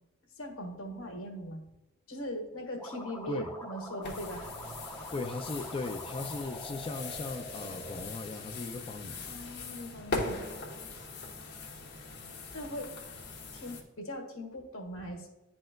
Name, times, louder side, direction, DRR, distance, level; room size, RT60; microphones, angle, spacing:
voice 1, 0.3-1.6 2.1-4.5 9.3-10.4 12.5-12.9 13.5-15.3, equal, 90° left, 2 dB, 1.4 m, -40 dB
sound 1, 2.8-8.0, equal, 10° left, 0.8 m, -45 dB
sound 2, 4.0-13.8, left 3 dB, 55° left, 1.2 m, -41 dB
voice 2, 5.1-9.3, left 3 dB, 25° left, 5 dB, 0.3 m, -38 dB
10.5 x 4.3 x 2.2 m, 1.0 s
head